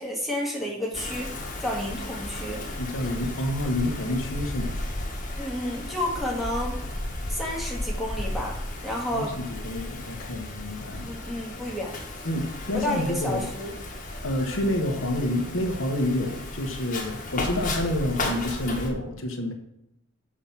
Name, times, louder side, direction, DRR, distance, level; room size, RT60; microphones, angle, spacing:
voice 1, 0.0-1.3 1.6-2.6 5.4-6.8 7.3-8.5 8.8-9.4 11.0-12.0 12.7-13.7, left 1 dB, ahead, -2 dB, 1.8 m, -30 dB
Wind, 0.9-18.9, left 1 dB, 40° left, 1.5 m, -34 dB
voice 2, 2.8-4.8 9.1-11.1 12.2-13.5 14.2-19.5, left 1 dB, 80° left, 4 dB, 1.2 m, -28 dB
7.3 x 4.9 x 5.8 m, 0.80 s
head